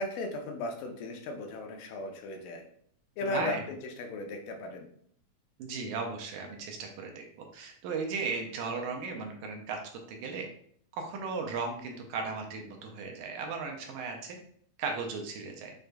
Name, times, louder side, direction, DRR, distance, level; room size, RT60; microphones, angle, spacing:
voice 1, 0.0-2.6 3.2-4.9, left 2 dB, 90° left, 3 dB, 2.2 m, -36 dB
voice 2, 3.2-3.6 5.6-7.2 7.5-9.8 10.1-10.4 10.9-14.4 14.8-15.7, right 4 dB, 80° right, 3 dB, 2.0 m, -36 dB
6.3 x 2.4 x 2.2 m, 0.62 s
omnidirectional pair, 3.5 m